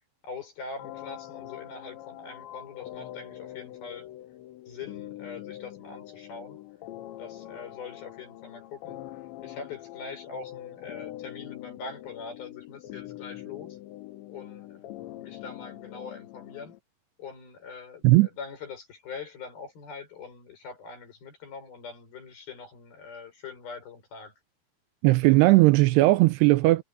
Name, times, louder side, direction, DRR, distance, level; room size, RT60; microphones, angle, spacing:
voice 1, 0.2-4.1 4.7-6.6 7.2-9.0 9.4-13.8 14.3-16.7 17.2-24.3, left 5 dB, 55° left, 8.2 m, -43 dB
sound 1, 0.8-16.8, left 14 dB, 90° left, 3.5 m, -43 dB
voice 2, 25.0-26.8, right 20 dB, 80° right, 2.6 m, -18 dB
omnidirectional pair, 5.0 m